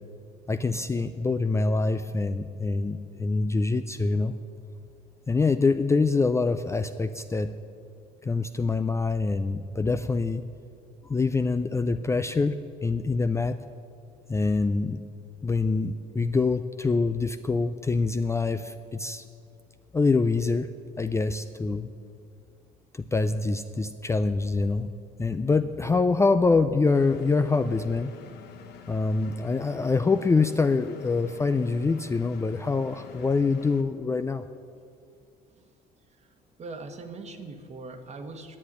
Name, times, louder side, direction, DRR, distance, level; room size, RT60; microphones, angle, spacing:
voice 1, 0.5-4.3 5.3-7.5 8.2-10.4 11.0-13.6 14.3-15.0 15.4-19.2 19.9-20.7 21.0-21.9 22.9-24.9 25.2-28.1 28.9-34.4, left 3 dB, 15° left, 10 dB, 0.4 m, -25 dB
Engine, 26.9-33.8, left 7 dB, 75° left, 1.2 m, -48 dB
voice 2, 36.6-38.6, right 3 dB, 40° right, 7 dB, 1.4 m, -41 dB
11.0 x 7.9 x 9.9 m, 2.3 s
cardioid pair, 110°, 17 cm